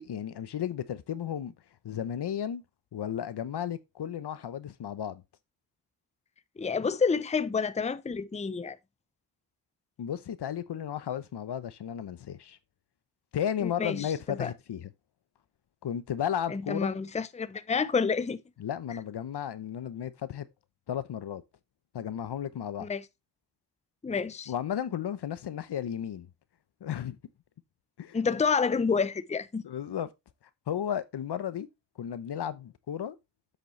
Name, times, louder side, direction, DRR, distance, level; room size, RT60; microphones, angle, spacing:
voice 1, 0.0-1.5 1.8-2.6 2.9-5.2 10.0-12.6 13.3-14.9 15.8-16.9 18.6-20.5 20.9-21.4 21.9-22.9 24.5-26.3 26.8-27.2 28.0-28.2 29.6-30.1 30.7-31.7 32.0-33.2, left 9 dB, 70° left, 0.9 m, -34 dB
voice 2, 6.6-8.8 13.6-14.5 16.5-18.4 22.8-23.0 24.0-24.5 28.1-29.6, left 5 dB, 15° left, 0.6 m, -29 dB
7.8 x 6.7 x 3.2 m
cardioid pair, 55°, 42 cm